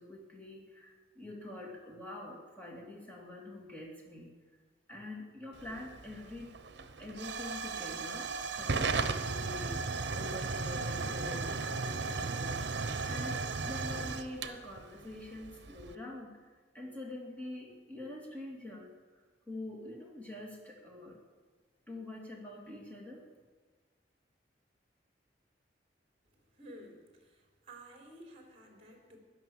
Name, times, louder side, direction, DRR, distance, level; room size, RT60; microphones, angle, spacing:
voice 1, 0.0-4.3 4.9-6.5 7.0-8.3 8.6-21.2 21.9-23.2, left 2 dB, 10° left, -1 dB, 2.8 m, -46 dB
Hiss / Fire / Tick, 5.5-15.9, right 4 dB, 65° right, 0.9 m, -36 dB
voice 2, 26.6-29.2, right 1 dB, 35° right, 1 dB, 3.6 m, -53 dB
16.5 x 11.5 x 7.2 m, 1.4 s
head